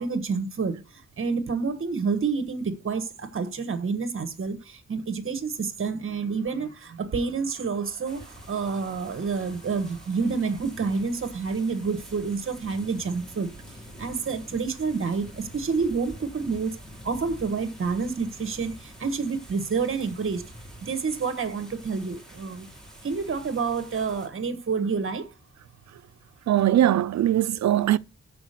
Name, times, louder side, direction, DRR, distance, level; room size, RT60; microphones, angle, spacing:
voice 1, 0.0-13.5 14.0-16.8 17.0-20.5 20.8-22.7 23.0-25.3, right 5 dB, 45° right, 1.3 m, -28 dB
sound 1, 8.0-24.3, equal, ahead, 2.4 m, -46 dB
voice 2, 26.5-28.0, right 12 dB, 70° right, 0.4 m, -21 dB
6.5 x 6.0 x 6.6 m
wide cardioid pair, 145°, 29 cm